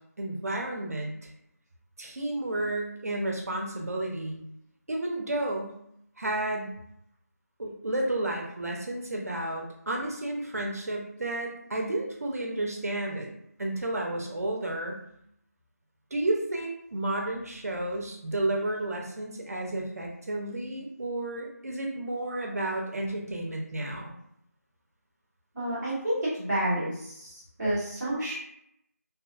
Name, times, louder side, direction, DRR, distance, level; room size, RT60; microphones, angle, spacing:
voice 1, 0.2-1.3 2.0-4.4 4.9-5.7 6.2-6.8 7.6-13.3 13.6-15.0 16.1-24.1, right 1 dB, 65° right, 0 dB, 0.5 m, -31 dB
voice 2, 25.5-28.3, right 1 dB, 5° right, -17 dB, 0.7 m, -30 dB
2.7 x 2.2 x 2.4 m, 0.75 s
figure-of-eight pair, 175°, 9 cm